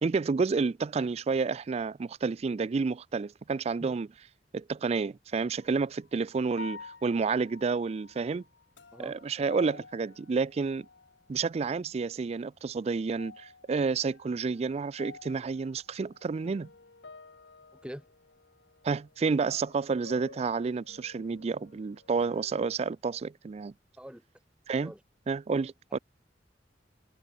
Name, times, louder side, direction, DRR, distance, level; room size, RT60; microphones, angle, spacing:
voice 1, 0.0-4.1 4.5-8.4 9.0-10.9 11.3-16.7 18.8-23.7 24.7-24.9 25.3-26.0, right 4 dB, 35° right, 0.3 m, -30 dB
voice 2, 3.8-4.0 8.9-9.2 17.8-18.1 24.0-24.2 24.8-25.0 25.9-26.0, equal, 5° right, 1.8 m, -43 dB
sound 1, 5.6-6.0 6.5-11.4 11.7-12.5 12.9-22.7, left 4 dB, 90° left, 1.4 m, -51 dB
head